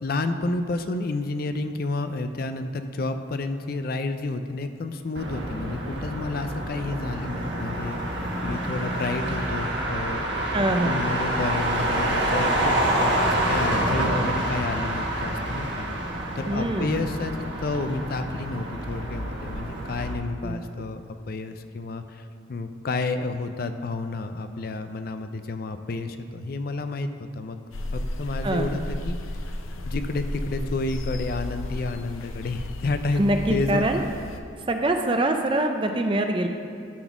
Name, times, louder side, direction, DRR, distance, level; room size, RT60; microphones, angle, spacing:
voice 1, 0.0-10.4 10.8-21.0 21.3-27.1 27.4-27.6 27.9-29.2 29.9-33.2 33.5-34.0, left 3 dB, 50° left, 8 dB, 0.4 m, -30 dB
Motor vehicle (road), 5.1-20.1, right 1 dB, 60° right, 1.4 m, -27 dB
voice 2, 10.5-11.0 16.5-17.0 20.4-20.6 28.4-28.8 33.2-34.0 34.7-36.5, right 1 dB, 25° right, 5 dB, 0.5 m, -24 dB
sound 1, 27.7-34.4, left 1 dB, 85° left, 0.7 m, -33 dB
12.5 x 4.1 x 6.0 m, 2.5 s
head